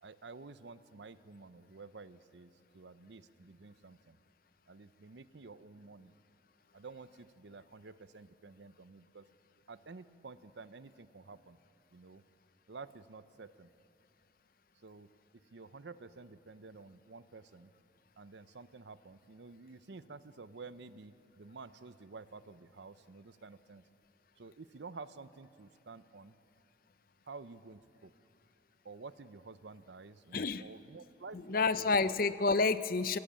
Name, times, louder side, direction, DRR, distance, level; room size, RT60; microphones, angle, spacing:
voice 1, 0.0-4.2 4.7-6.1 6.7-9.2 9.7-11.6 11.9-12.2 12.7-13.7 14.8-15.1 15.5-17.7 18.2-23.8 24.4-26.3 27.3-28.1 28.8-32.1, right 4 dB, 65° right, 14 dB, 0.7 m, -51 dB
voice 2, 30.3-30.7 31.5-33.2, left 4 dB, 50° left, 14 dB, 0.6 m, -29 dB
26.0 x 16.5 x 7.5 m, 2.7 s
head